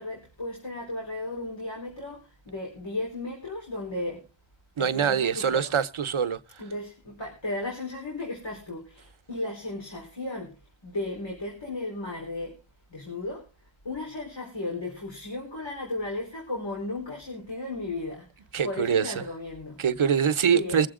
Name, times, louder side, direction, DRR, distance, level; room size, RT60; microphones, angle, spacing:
voice 1, 0.0-4.2 4.8-5.7 6.6-10.5 10.8-12.5 12.9-13.4 13.8-18.3 18.6-19.8 20.4-20.9, left 2 dB, 65° left, 4.3 m, -35 dB
voice 2, 4.8-6.4 18.5-19.2 19.8-20.9, right 7 dB, 85° right, 0.9 m, -24 dB
22.0 x 7.9 x 3.7 m
wide cardioid pair, 55°, 47 cm